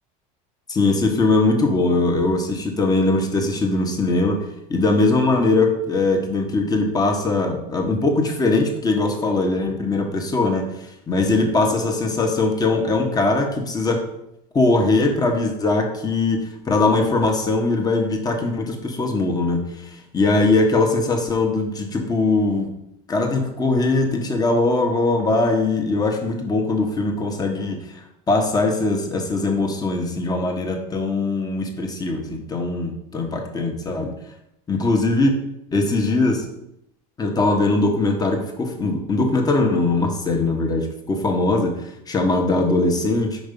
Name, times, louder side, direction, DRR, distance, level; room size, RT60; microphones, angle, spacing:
voice 1, 0.7-14.0 14.5-16.4 16.6-19.6 19.9-22.7 23.1-28.0 28.3-34.1 34.7-35.3 35.7-36.4 37.2-43.4, left 2 dB, 20° left, 3 dB, 1.2 m, -21 dB
5.2 x 4.7 x 5.3 m, 0.81 s
supercardioid pair, 120°, 19 cm